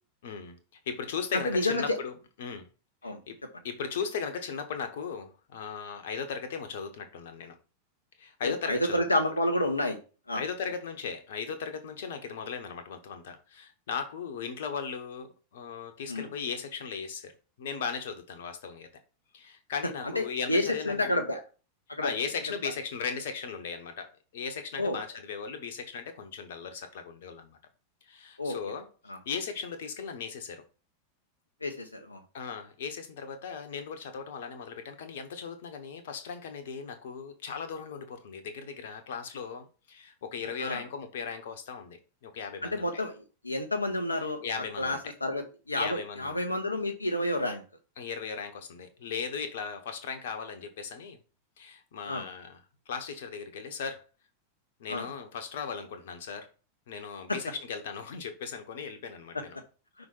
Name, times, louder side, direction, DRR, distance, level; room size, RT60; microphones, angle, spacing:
voice 1, 0.2-0.6 0.9-2.7 3.0-3.4 3.6-7.6 8.2-9.0 10.3-17.3 17.6-18.9 19.3-21.2 22.0-24.1 24.3-27.6 28.1-28.9 29.2-30.6 32.3-42.9 44.2-45.1 45.8-46.3 48.0-51.2 51.6-54.0 54.8-56.5 56.9-59.6, left 6 dB, 55° left, 1.1 m, -37 dB
voice 2, 1.5-2.0 3.0-3.2 8.4-10.0 10.3-10.4 16.1-16.3 20.0-21.4 21.9-22.1 24.8-25.0 28.4-28.6 29.1-29.2 31.6-32.2 40.6-40.8 42.6-44.4 44.8-47.6 52.1-52.2 54.9-55.1 57.3-57.4, left 1 dB, 85° left, 0.8 m, -30 dB
5.6 x 4.0 x 5.5 m
figure-of-eight pair, 90°, 0 cm